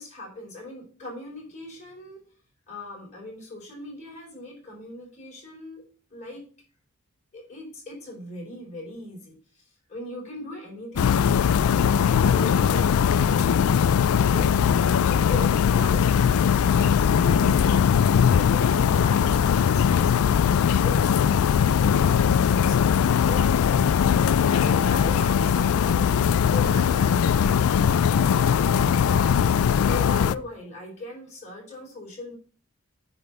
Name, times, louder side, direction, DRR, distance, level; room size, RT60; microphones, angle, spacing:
voice 1, 0.0-2.2 2.7-5.8 6.1-6.4 7.5-9.4 9.9-11.3 12.0-14.5 14.9-18.0 18.3-20.3 20.7-23.9 24.5-26.1 26.5-29.3 29.8-32.4, left 2 dB, 30° left, -3 dB, 4.4 m, -39 dB
sound 1, 11.0-30.3, left 7 dB, 75° left, 0.3 m, -20 dB
9.4 x 3.4 x 6.7 m, 0.41 s
head